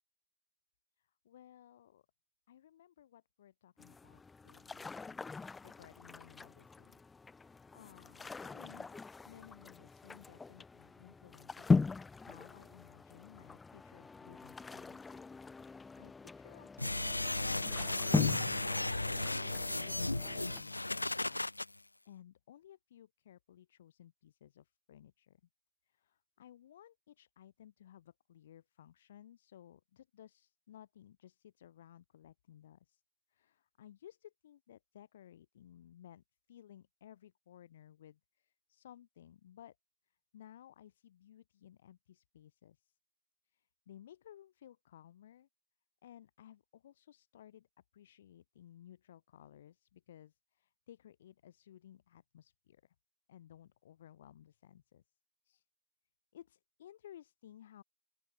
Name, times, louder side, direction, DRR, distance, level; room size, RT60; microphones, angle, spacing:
voice 1, 1.0-2.1 2.5-5.2 5.6-7.0 7.4-15.2 15.4-21.5 22.0-25.4 25.9-33.0 33.3-36.2 36.5-39.8 40.3-42.9 43.5-45.5 46.0-47.7 47.9-52.9 53.3-55.0 55.4-55.6 56.3-57.8, left 11 dB, 35° left, 6.2 m, -58 dB
sound 1, 3.8-20.6, left 4 dB, 5° left, 0.3 m, -40 dB
sound 2, 16.8-21.7, left 2 dB, 85° left, 0.3 m, -35 dB
open air
figure-of-eight pair, 145°, 0 cm